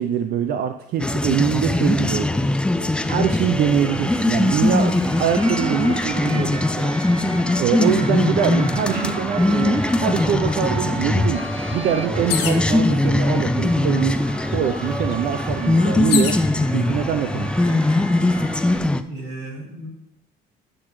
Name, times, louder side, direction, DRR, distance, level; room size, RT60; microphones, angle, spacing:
voice 1, 0.0-2.5 3.1-6.9 7.6-11.4 11.7-14.2 14.5-16.4 16.7-17.5, right 9 dB, 65° right, 8 dB, 0.6 m, -24 dB
sound 1, 1.0-19.0, left 2 dB, 5° left, 0.4 m, -21 dB
sound 2, 3.7-18.8, right 4 dB, 35° right, 0.9 m, -36 dB
voice 2, 7.7-8.1 8.9-9.2 19.0-19.9, right 3 dB, 90° right, -1 dB, 2.8 m, -30 dB
sound 3, 12.3-12.7 13.6-13.7 14.1-16.4 17.2-17.7, left 8 dB, 85° left, 1.2 m, -28 dB
9.9 x 7.2 x 3.1 m, 0.88 s
cardioid pair, 110°, 17 cm